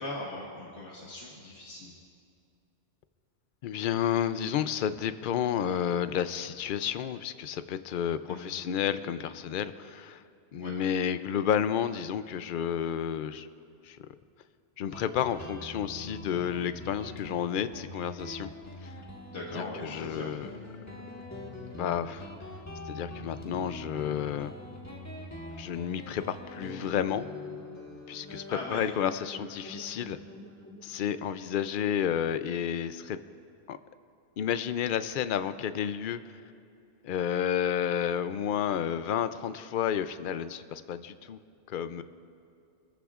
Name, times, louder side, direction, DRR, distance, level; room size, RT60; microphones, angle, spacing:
voice 1, 0.0-1.9 8.3-8.5 10.6-10.7 19.3-20.4 28.5-28.8, left 2 dB, 75° left, -4 dB, 1.8 m, -39 dB
voice 2, 3.6-10.2 10.5-13.5 13.8-14.0 14.8-18.5 18.8-18.9 19.5-20.5 21.7-22.3 22.9-24.5 25.6-27.2 28.1-30.2 30.8-33.2 33.7-33.8 34.4-36.2 37.0-41.4 41.7-42.0, left 9 dB, 60° left, 12 dB, 0.6 m, -31 dB
Guitar, 14.9-32.1, left 1 dB, 15° left, 1.5 m, -44 dB
26.5 x 14.5 x 2.5 m, 2.5 s
omnidirectional pair, 1.2 m